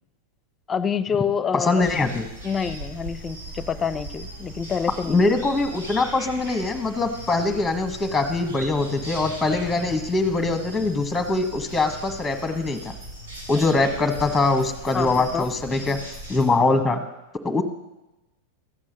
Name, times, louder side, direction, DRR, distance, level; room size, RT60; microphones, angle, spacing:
voice 1, 0.7-1.9 2.4-5.2 14.9-15.5, left 6 dB, 25° left, 15 dB, 0.7 m, -27 dB
voice 2, 1.5-2.2 5.1-12.9 13.5-16.0 16.3-17.0 17.4-17.6, left 3 dB, 5° left, 7 dB, 1.4 m, -23 dB
sound 1, 1.8-16.4, right 1 dB, 80° right, 4.8 m, -39 dB
13.5 x 8.4 x 6.5 m, 0.99 s
figure-of-eight pair, 90°, 0 cm